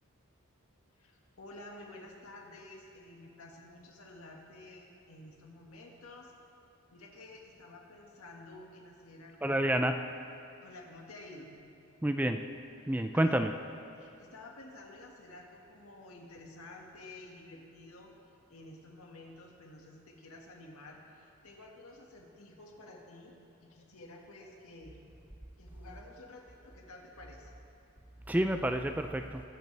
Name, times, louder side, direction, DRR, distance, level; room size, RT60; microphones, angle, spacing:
voice 1, 0.9-6.3 6.9-9.7 10.6-11.6 12.8-13.4 14.0-18.1 18.5-23.4 23.6-25.0 25.6-27.5, left 2 dB, 80° left, 0 dB, 1.9 m, -51 dB
voice 2, 9.4-10.0 12.0-12.4 12.9-13.5 28.3-29.4, right 1 dB, 5° right, 6 dB, 0.4 m, -29 dB
22.0 x 10.5 x 3.4 m, 2.6 s
head